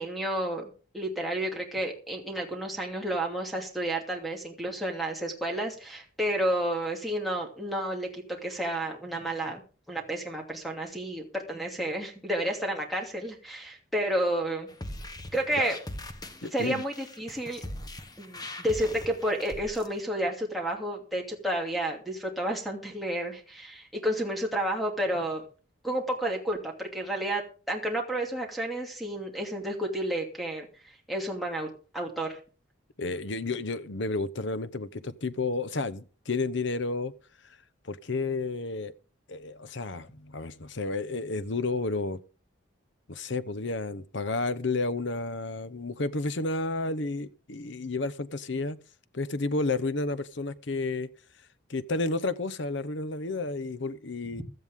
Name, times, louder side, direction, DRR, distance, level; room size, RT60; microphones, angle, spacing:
voice 1, 0.0-9.6 9.9-14.7 15.3-15.8 16.5-17.6 18.2-25.4 25.8-30.7 31.1-31.7 31.9-32.4, right 1 dB, ahead, 2.6 m, -31 dB
sound 1, 14.7-19.9, left 1 dB, 20° left, 1.1 m, -41 dB
voice 2, 16.4-16.8 33.0-37.1 37.8-38.9 39.3-42.2 43.1-48.8 49.1-51.1 51.7-54.4, left 3 dB, 65° left, 0.9 m, -31 dB
16.0 x 13.0 x 3.7 m
head